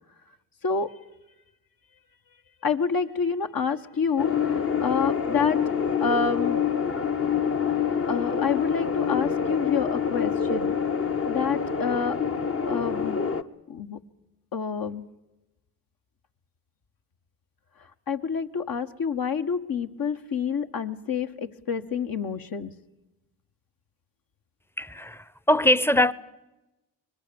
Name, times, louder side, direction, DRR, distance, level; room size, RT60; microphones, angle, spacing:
voice 1, 2.6-5.6 6.0-6.6 8.1-10.7 11.3-12.2 12.7-13.4 13.7-14.0 14.5-15.0 18.1-22.7, left 6 dB, 50° left, 1.5 m, -28 dB
sound 1, 4.2-13.4, left 7 dB, 30° left, 1.1 m, -26 dB
voice 2, 24.8-26.1, left 1 dB, 5° left, 0.9 m, -22 dB
24.0 x 21.0 x 7.0 m
hypercardioid pair, 45°, 44 cm